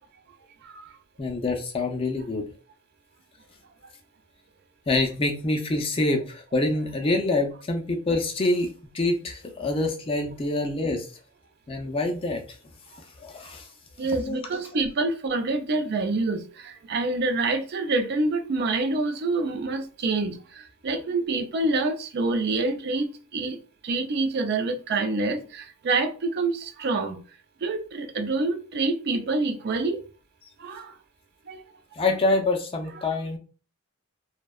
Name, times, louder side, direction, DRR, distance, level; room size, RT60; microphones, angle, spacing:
voice 1, 1.2-2.5 4.9-8.7 8.9-11.1 11.7-12.4 13.2-13.7 14.2-14.6 31.9-33.4, left 2 dB, 25° left, 0.4 m, -26 dB
voice 2, 14.0-23.6 23.8-27.2 27.6-30.0 30.6-30.9 31.5-31.6, right 3 dB, 50° right, 0.4 m, -27 dB
2.6 x 2.1 x 2.2 m
head